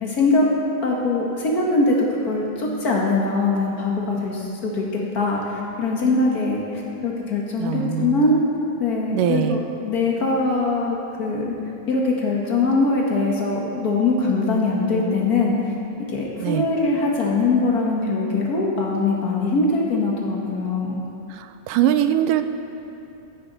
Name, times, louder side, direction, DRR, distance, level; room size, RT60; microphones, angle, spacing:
voice 1, 0.0-0.5 0.8-8.4 8.8-11.5 11.9-15.7 16.1-21.0, left 3 dB, 85° left, -3 dB, 0.8 m, -22 dB
voice 2, 7.6-8.4 9.1-9.6 16.4-16.7 21.3-22.4, right 11 dB, 85° right, 9 dB, 2.2 m, -22 dB
16.5 x 13.5 x 4.0 m, 2.8 s
omnidirectional pair, 3.9 m